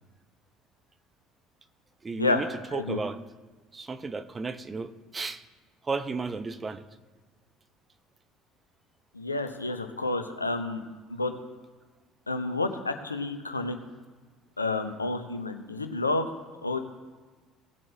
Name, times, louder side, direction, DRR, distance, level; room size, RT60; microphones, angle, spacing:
voice 1, 2.0-3.2 3.7-5.4 5.8-6.8, right 4 dB, 25° right, 11 dB, 0.8 m, -34 dB
voice 2, 9.1-10.8 11.1-11.3 12.3-13.8 14.6-16.3 16.6-16.8, left 3 dB, 85° left, 7 dB, 0.7 m, -29 dB
18.0 x 7.4 x 2.7 m, 1.4 s
figure-of-eight pair, 60°, 0 cm